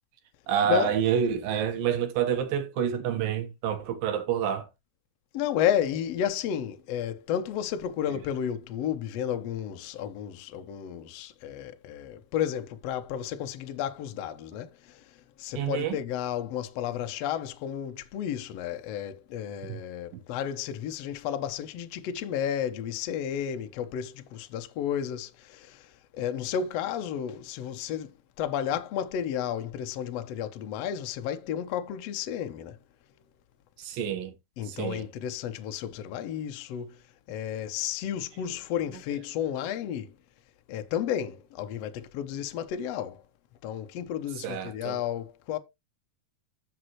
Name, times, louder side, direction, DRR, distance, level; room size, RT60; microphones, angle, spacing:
voice 1, 0.5-4.7 8.0-8.2 15.5-16.0 19.7-19.8 33.8-34.3 34.7-35.1 44.4-45.0, right 8 dB, 70° right, 3.0 m, -28 dB
voice 2, 5.3-15.0 15.4-25.8 26.1-28.1 28.4-32.8 34.6-36.9 37.3-40.1 40.7-43.2 43.6-45.6, left 9 dB, 85° left, 1.4 m, -32 dB
14.0 x 5.5 x 3.1 m
omnidirectional pair, 4.4 m